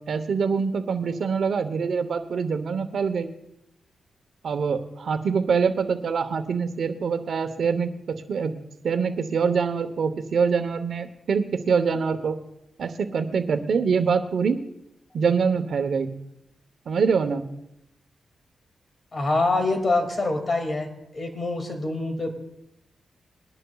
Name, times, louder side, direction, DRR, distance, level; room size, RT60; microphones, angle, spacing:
voice 1, 0.1-3.3 4.4-7.9 8.3-8.5 8.8-12.3 12.8-14.6 15.1-16.1 16.9-17.4, right 5 dB, 70° right, 9 dB, 1.0 m, -24 dB
voice 2, 19.1-20.9 21.1-22.3, left 2 dB, 40° left, 4 dB, 2.4 m, -25 dB
22.0 x 11.0 x 2.4 m, 0.84 s
cardioid pair, 75°, 0 cm